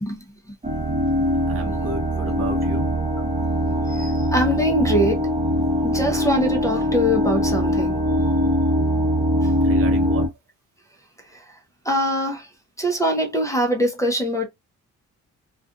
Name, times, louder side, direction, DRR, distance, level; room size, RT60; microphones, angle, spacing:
sound 1, 0.6-10.3, equal, 20° right, 0.9 m, -22 dB
voice 1, 1.5-2.9 9.6-10.3, right 3 dB, 50° right, 1.0 m, -33 dB
voice 2, 3.9-5.3 5.8-8.0 9.4-9.5 11.3-11.4 11.8-12.5 12.8-14.4, equal, 10° left, 0.7 m, -23 dB
2.4 x 2.4 x 2.4 m
cardioid pair, 90°, 30 cm